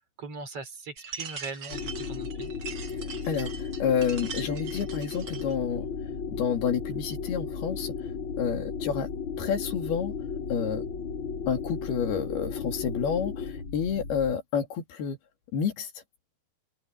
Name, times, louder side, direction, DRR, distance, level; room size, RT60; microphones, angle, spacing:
voice 1, 0.2-2.5, right 3 dB, 40° right, 4.4 m, -40 dB
sound 1, 1.0-5.5, right 6 dB, 65° right, 1.0 m, -41 dB
sound 2, 1.7-14.3, left 6 dB, 30° left, 5.0 m, -35 dB
voice 2, 3.3-5.9 6.3-7.9 8.4-9.1 9.4-10.1 10.5-10.8 11.5-15.2 15.5-15.9, left 7 dB, 75° left, 4.5 m, -29 dB
omnidirectional pair, 4.6 m